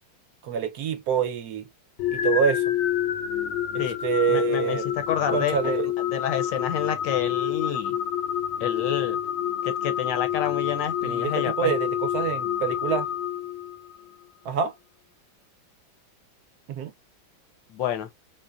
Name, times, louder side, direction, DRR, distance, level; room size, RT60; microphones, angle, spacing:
voice 1, 0.4-1.7 2.1-2.6 4.0-4.8 5.3-5.9 11.0-13.0 14.4-14.7 16.7-16.9, right 8 dB, 65° right, 1.0 m, -26 dB
sound 1, 2.0-14.0, left 10 dB, 90° left, 1.6 m, -28 dB
voice 2, 4.3-4.8 5.1-5.7 6.0-8.0 8.6-9.2 9.6-11.7 17.7-18.1, left 9 dB, 75° left, 1.3 m, -28 dB
3.9 x 2.1 x 2.3 m
omnidirectional pair, 2.2 m